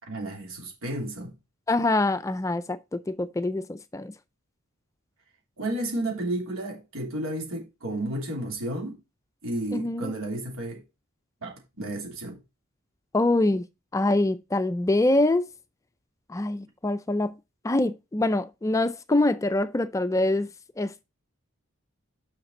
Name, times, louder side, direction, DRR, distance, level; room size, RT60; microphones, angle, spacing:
voice 1, 0.1-1.3 5.6-9.0 9.4-10.8 11.4-12.4, right 1 dB, 85° right, 3.1 m, -32 dB
voice 2, 1.7-4.1 9.7-10.1 13.1-13.7 13.9-15.5 16.3-17.3 17.6-20.5 20.8-21.0, left 2 dB, 15° left, 0.4 m, -25 dB
6.7 x 5.8 x 4.2 m
head